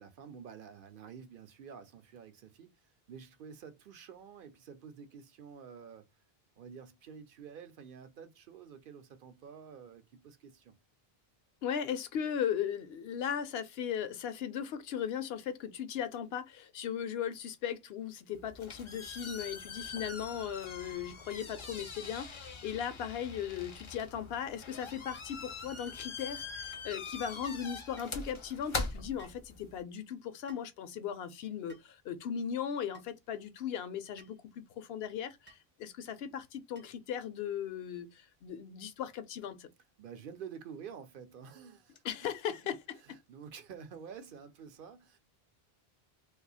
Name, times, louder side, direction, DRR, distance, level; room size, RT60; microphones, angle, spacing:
voice 1, 0.0-6.1 6.6-10.7 40.0-42.3 42.6-45.2, right 7 dB, 65° right, 0.7 m, -49 dB
voice 2, 11.6-39.7 42.0-43.0, left 8 dB, 80° left, 0.8 m, -37 dB
sound 1, 18.3-29.8, left 4 dB, 40° left, 0.5 m, -43 dB
sound 2, 28.0-28.2 29.2-29.4 30.5-30.7 31.7-32.0 32.9-33.1 34.2-34.4 35.5-35.7 36.7-37.1, right 4 dB, 15° right, 0.4 m, -59 dB
2.6 x 2.4 x 4.0 m
omnidirectional pair, 1.0 m